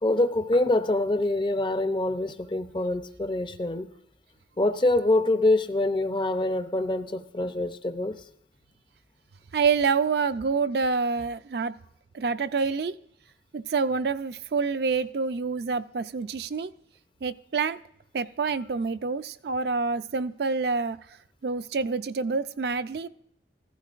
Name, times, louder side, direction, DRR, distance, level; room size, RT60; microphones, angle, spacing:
voice 1, 0.0-3.9 4.6-8.2, left 2 dB, 25° left, 0.5 m, -25 dB
voice 2, 9.5-11.7 12.1-12.9 13.5-16.7 17.2-17.8 18.1-21.0 21.4-23.1, right 5 dB, 60° right, 0.4 m, -27 dB
15.0 x 14.5 x 2.5 m
head